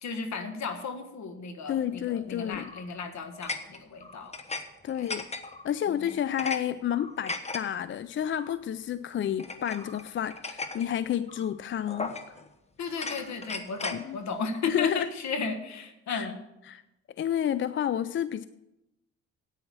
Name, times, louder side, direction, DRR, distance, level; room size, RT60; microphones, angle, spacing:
voice 1, 0.0-4.3 4.9-5.1 5.9-6.1 12.8-16.4, left 4 dB, 65° left, 7 dB, 1.7 m, -35 dB
voice 2, 1.7-2.7 4.8-5.2 5.6-12.1 13.9-14.2 14.7-15.1 16.1-16.3 16.7-16.8 17.2-18.5, left 10 dB, 40° left, 15 dB, 0.4 m, -30 dB
sound 1, 2.5-2.9 3.4-4.6 4.9-5.7 6.1-6.6 6.9-7.6 8.3-8.5 9.4-10.9 11.3-11.5 11.9-12.5 12.9-14.0, left 3 dB, 20° left, 1.1 m, -37 dB
9.7 x 9.0 x 6.2 m, 0.91 s
cardioid pair, 90°, 30 cm